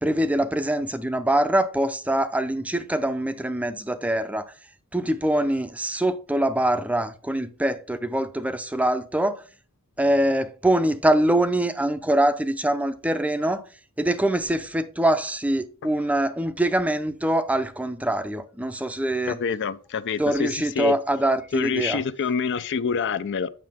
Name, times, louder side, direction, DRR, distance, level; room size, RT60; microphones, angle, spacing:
voice 1, 0.0-4.4 4.9-9.4 10.0-13.6 14.0-19.4 20.2-22.0, right 1 dB, 5° right, 0.5 m, -24 dB
voice 2, 19.3-21.0 21.5-23.5, left 6 dB, 55° left, 0.5 m, -26 dB
7.6 x 6.1 x 3.6 m
head